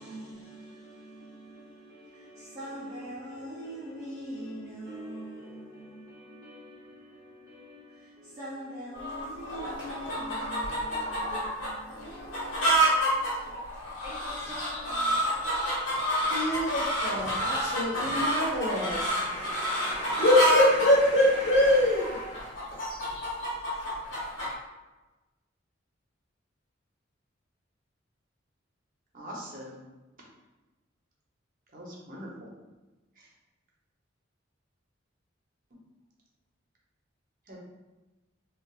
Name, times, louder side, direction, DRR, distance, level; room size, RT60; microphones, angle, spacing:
voice 1, 0.0-13.6 14.0-15.3, equal, 15° right, 0.4 m, -44 dB
sound 1, 8.9-24.5, right 1 dB, 80° left, 1.3 m, -29 dB
voice 2, 16.3-22.5, left 1 dB, 65° left, 1.0 m, -25 dB
voice 3, 29.1-29.8 31.7-32.5 33.2-33.3 37.5-37.6, equal, 45° right, 0.7 m, -42 dB
3.7 x 2.4 x 2.3 m
head